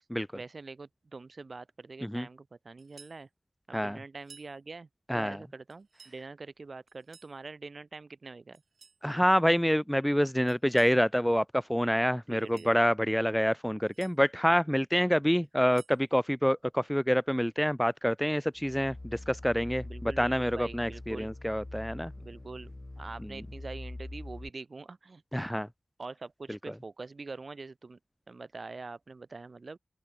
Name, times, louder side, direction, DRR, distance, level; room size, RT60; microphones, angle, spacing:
voice 1, 0.3-3.3 3.7-8.6 12.0-12.7 19.8-21.3 22.2-25.2 26.0-28.0 28.3-29.8, right 3 dB, 55° right, 3.3 m, -44 dB
sound 1, 2.8-3.2 4.2-4.5 5.7-6.2 6.9-7.4 8.5-9.0 10.5-11.0 12.3-12.8 13.6-14.2 15.4-16.0, right 5 dB, 90° right, 1.9 m, -56 dB
voice 2, 5.1-5.4 9.0-22.1 23.2-23.3 25.3-25.7 26.5-26.6, equal, 5° left, 0.6 m, -27 dB
sound 2, 18.6-24.5, left 2 dB, 25° left, 2.6 m, -44 dB
open air
wide cardioid pair, 70°, 0 cm